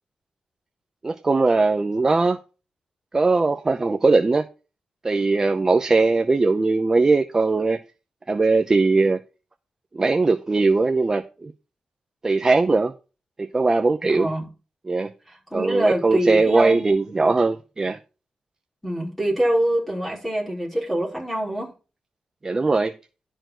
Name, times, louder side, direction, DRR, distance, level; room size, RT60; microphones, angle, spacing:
voice 1, 1.0-2.4 3.1-4.5 5.0-7.8 8.3-9.2 9.9-11.5 12.2-12.9 13.4-14.3 14.9-15.1 15.5-18.0 22.4-22.9, right 3 dB, 20° right, 0.6 m, -20 dB
voice 2, 14.1-14.5 15.3-17.3 18.8-21.7, right 1 dB, 5° left, 5.1 m, -25 dB
11.5 x 4.6 x 6.1 m
wide cardioid pair, 170°, 3 cm